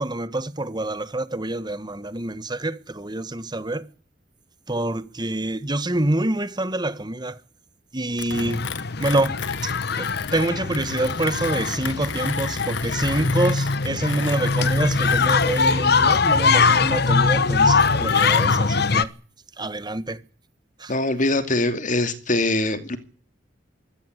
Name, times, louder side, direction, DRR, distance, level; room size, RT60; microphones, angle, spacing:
voice 1, 0.0-3.9 4.7-7.4 7.9-8.6 9.0-9.4 9.6-19.1 19.6-20.2 20.8-20.9, right 1 dB, 25° right, 1.5 m, -26 dB
Mechanisms, 8.2-18.6, left 7 dB, 80° left, 1.4 m, -35 dB
sound 1, 8.3-19.0, left 4 dB, 60° left, 1.2 m, -21 dB
voice 2, 20.9-23.0, left 2 dB, 45° left, 2.6 m, -23 dB
23.5 x 17.0 x 8.2 m
head